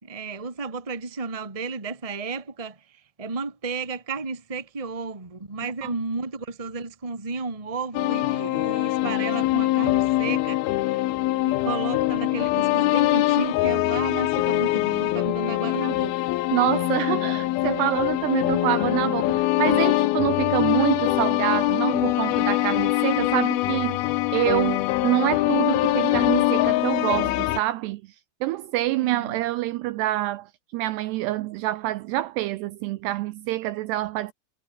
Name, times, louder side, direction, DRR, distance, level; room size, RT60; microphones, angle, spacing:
voice 1, 0.0-11.1 11.4-16.3 29.0-29.4, right 4 dB, 15° right, 1.3 m, -33 dB
sound 1, 7.9-27.6, left 17 dB, 80° left, 2.3 m, -23 dB
voice 2, 16.5-24.1 24.3-28.0 28.4-34.3, right 16 dB, 80° right, 2.5 m, -26 dB
omnidirectional pair, 5.4 m